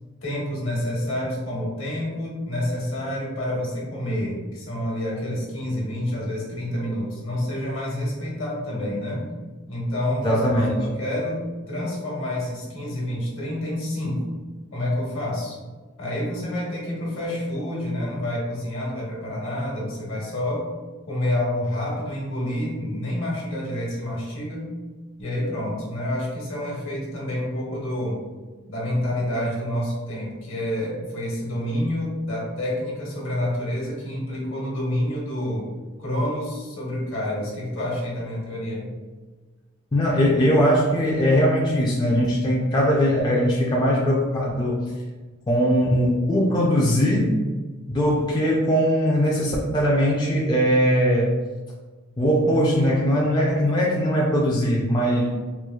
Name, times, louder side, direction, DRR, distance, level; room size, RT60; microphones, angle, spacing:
voice 1, 0.2-9.3 9.7-14.2 14.7-15.6 16.0-20.7 21.1-24.7 25.2-28.2 28.7-35.7 36.0-38.9, left 1 dB, 65° left, -4 dB, 1.2 m, -28 dB
voice 2, 10.2-10.7 39.9-44.8 45.5-47.3 47.9-51.3 52.2-55.3, equal, 20° left, -4 dB, 0.3 m, -20 dB
4.4 x 2.3 x 2.3 m, 1.3 s
head